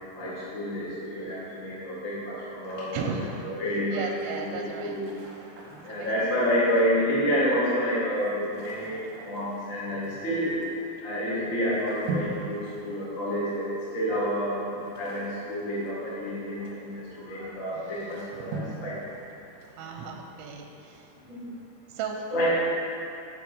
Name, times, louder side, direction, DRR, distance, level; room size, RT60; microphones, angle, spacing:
voice 1, 0.2-2.9 3.4-4.1 4.4-5.1 5.8-9.0 9.2-10.5 11.0-16.9 17.2-18.9 21.3-21.4 22.3-22.8, equal, 80° left, -9 dB, 0.7 m, -28 dB
voice 2, 2.9-5.0 5.9-6.1 9.9-10.2 17.7-18.5 19.8-21.1 21.9-22.3, right 5 dB, 90° right, 2 dB, 3.0 m, -36 dB
sound 1, 4.2-21.0, right 3 dB, 70° right, 1.8 m, -43 dB
6.9 x 6.9 x 5.0 m, 2.7 s
omnidirectional pair, 5.3 m